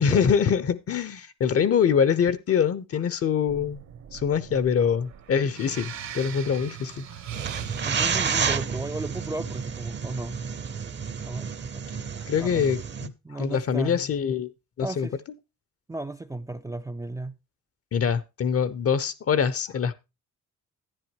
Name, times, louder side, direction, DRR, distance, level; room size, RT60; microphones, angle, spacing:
voice 1, 0.0-3.8 4.1-7.0 12.3-14.5 14.8-15.1 17.9-19.9, left 7 dB, 50° left, 0.9 m, -24 dB
sound 1, 3.5-9.1, right 9 dB, 65° right, 1.3 m, -41 dB
sound 2, 7.3-13.1, right 6 dB, 35° right, 0.8 m, -30 dB
voice 2, 7.8-10.4 11.2-11.9 12.4-12.8 13.2-14.0 14.8-15.1 15.9-17.4, right 2 dB, 10° right, 0.5 m, -35 dB
11.0 x 9.8 x 3.0 m
cardioid pair, 90°, 30 cm